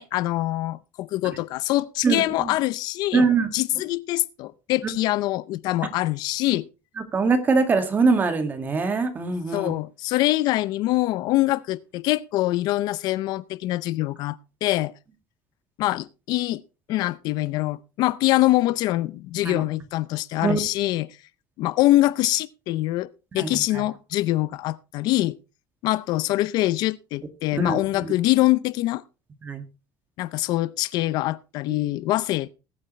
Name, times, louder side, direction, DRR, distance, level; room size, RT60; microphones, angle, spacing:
voice 1, 0.0-3.3 3.5-6.7 9.5-14.9 15.8-16.6 16.9-21.1 21.6-23.1 23.3-25.4 25.8-29.0 30.2-32.5, left 17 dB, 60° left, 0.5 m, -24 dB
voice 2, 2.0-2.5 3.1-3.5 7.1-9.7 19.5-19.6 20.4-20.6 23.3-23.8 27.6-28.1 29.4-29.6, right 4 dB, 25° right, 2.0 m, -23 dB
20.0 x 8.6 x 3.2 m
cardioid pair, 155°, 8 cm